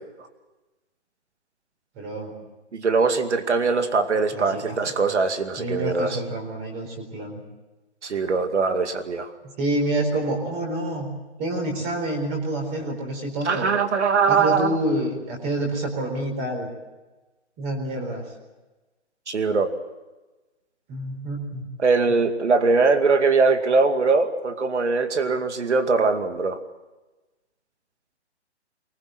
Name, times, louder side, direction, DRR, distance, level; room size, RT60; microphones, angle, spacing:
voice 1, 2.0-2.3 4.3-4.8 5.6-7.4 9.4-11.1 11.4-13.7 14.3-16.7 17.6-18.2 20.9-21.7, right 1 dB, 20° right, 2 dB, 4.2 m, -28 dB
voice 2, 2.7-6.2 8.0-9.3 13.4-14.8 19.3-19.7 21.8-26.6, right 4 dB, 80° right, 8 dB, 2.4 m, -21 dB
23.5 x 20.5 x 7.8 m, 1.1 s
hypercardioid pair, 160°, 34 cm